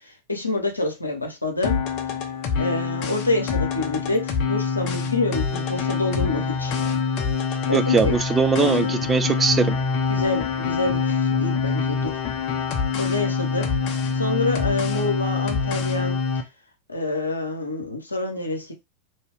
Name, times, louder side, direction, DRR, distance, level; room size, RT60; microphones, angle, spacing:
voice 1, 0.3-1.8 2.6-6.7 7.7-8.1 8.6-9.1 10.1-12.1 13.0-13.7 14.1-16.2 16.9-18.7, left 2 dB, 80° left, 0.7 m, -27 dB
sound 1, 1.6-16.4, left 5 dB, 40° left, 0.6 m, -25 dB
voice 2, 7.7-9.7, right 5 dB, 15° right, 0.3 m, -21 dB
2.7 x 2.2 x 3.4 m
figure-of-eight pair, 90°, 0 cm